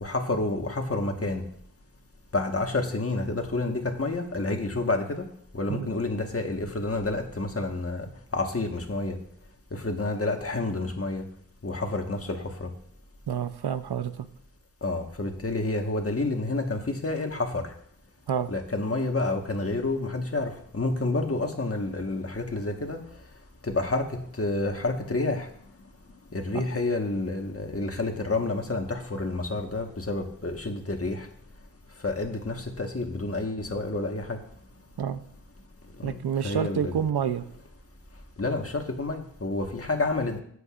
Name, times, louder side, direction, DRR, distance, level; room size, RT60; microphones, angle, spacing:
voice 1, 0.0-1.4 2.3-5.2 5.5-8.0 8.3-9.2 9.8-11.2 11.6-12.7 14.8-17.6 18.5-23.0 23.7-24.0 24.4-25.5 26.3-31.2 32.0-34.4 36.0-36.2 36.4-37.0 38.4-40.4, left 2 dB, 35° left, 3 dB, 1.5 m, -29 dB
voice 2, 13.3-14.3 18.3-18.5 26.5-26.6 35.0-35.2 36.0-37.5, right 8 dB, 85° right, 11 dB, 0.7 m, -28 dB
14.0 x 8.0 x 2.5 m, 0.65 s
wide cardioid pair, 60°, 38 cm